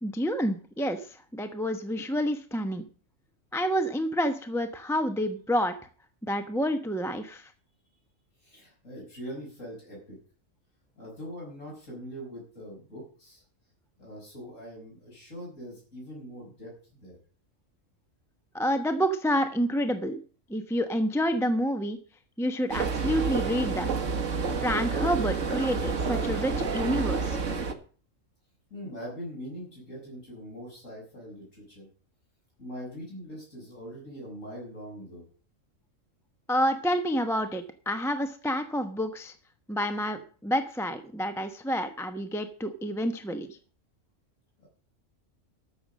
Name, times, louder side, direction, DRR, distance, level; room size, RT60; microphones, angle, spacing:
voice 1, 0.0-2.8 3.5-5.7 6.2-7.5 18.5-20.2 20.5-22.0 22.4-23.9 24.6-27.4 36.5-39.3 39.7-43.6, equal, ahead, 7 dB, 0.9 m, -28 dB
voice 2, 8.4-10.2 11.0-13.4 14.0-17.2 28.7-31.9 32.6-35.2 44.6-44.7, equal, 75° left, -3 dB, 6.3 m, -42 dB
sound 1, 22.7-27.7, right 5 dB, 70° right, 1.8 m, -29 dB
13.5 x 7.0 x 7.5 m, 0.41 s
omnidirectional pair, 1.3 m